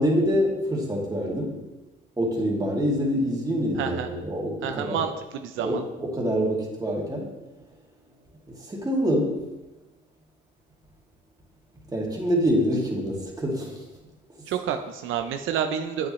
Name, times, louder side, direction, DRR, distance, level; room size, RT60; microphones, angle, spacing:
voice 1, 0.0-1.6 2.2-5.0 5.6-7.3 8.5-9.4 11.9-13.8, equal, 20° right, -3 dB, 2.3 m, -25 dB
voice 2, 3.7-4.1 4.6-5.8 14.5-16.1, right 8 dB, 80° right, 6 dB, 0.6 m, -29 dB
8.7 x 8.3 x 3.1 m, 1.1 s
cardioid pair, 90°, 20 cm